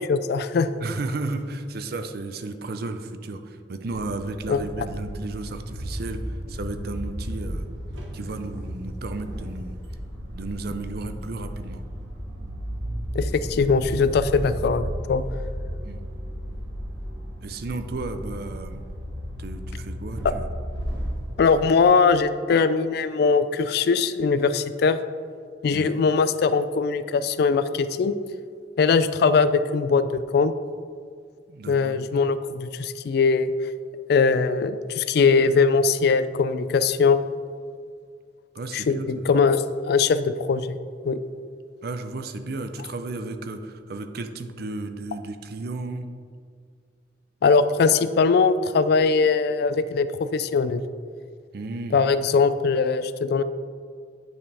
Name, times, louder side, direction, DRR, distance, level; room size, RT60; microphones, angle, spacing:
voice 1, 0.1-0.7 4.5-4.6 13.1-15.2 20.2-20.3 21.4-25.0 25.6-28.2 28.8-30.5 31.7-33.5 34.1-37.2 38.7-40.8 41.0-41.2 47.4-50.8 51.9-53.4, left 5 dB, 55° left, 13 dB, 0.3 m, -21 dB
voice 2, 0.8-7.7 8.1-9.8 10.3-11.8 15.8-16.0 17.4-18.8 19.4-20.5 25.7-25.9 31.5-32.0 38.5-39.2 41.8-46.0 51.5-52.0, right 2 dB, 55° right, 8 dB, 0.5 m, -33 dB
sound 1, 3.9-21.5, equal, 75° right, 1.2 m, -34 dB
9.3 x 5.5 x 3.4 m, 2.1 s
head